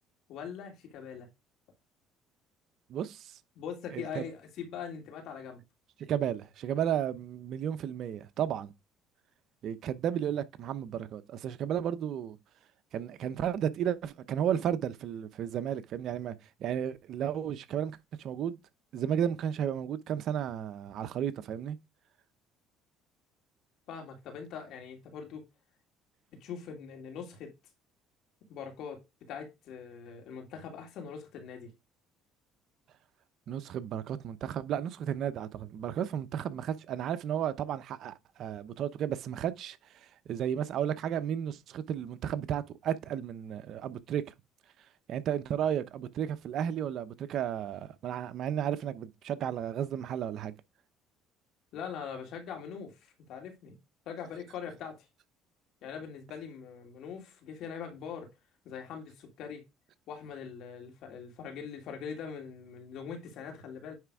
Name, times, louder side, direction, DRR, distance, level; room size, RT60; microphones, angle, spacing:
voice 1, 0.3-1.3 3.5-5.6 23.9-25.4 26.4-27.5 28.5-31.7 51.7-53.7 54.1-55.1 55.8-58.3 58.6-59.6 60.1-63.9, left 7 dB, 70° left, 2.8 m, -42 dB
voice 2, 2.9-3.4 3.9-4.2 6.0-8.7 9.6-12.4 12.9-18.6 18.9-21.8 33.5-44.2 45.1-50.5, right 9 dB, 60° right, 0.8 m, -33 dB
9.5 x 3.4 x 4.8 m
cardioid pair, 105°, 0 cm